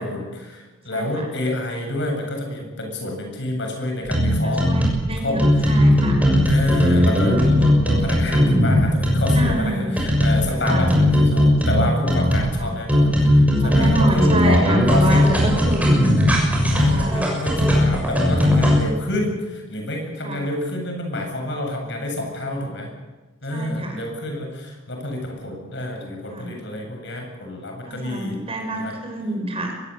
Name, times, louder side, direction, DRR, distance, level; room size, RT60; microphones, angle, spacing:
voice 1, 0.0-4.7 5.2-5.7 6.4-15.7 16.7-22.9 23.4-28.4 28.7-28.9, left 1 dB, 60° left, 3 dB, 7.7 m, -28 dB
voice 2, 0.9-1.3 4.4-6.2 9.2-10.0 10.6-10.9 12.6-12.8 13.6-16.1 16.4-17.3 20.2-20.4 23.5-24.0 26.3-26.6 27.9-29.8, right 1 dB, 30° right, 3 dB, 5.6 m, -27 dB
sound 1, 4.1-5.0 5.4-9.5 10.0-12.5 12.9-18.8, left 1 dB, 5° right, 6.8 m, -17 dB
23.5 x 21.5 x 8.3 m, 1.2 s
head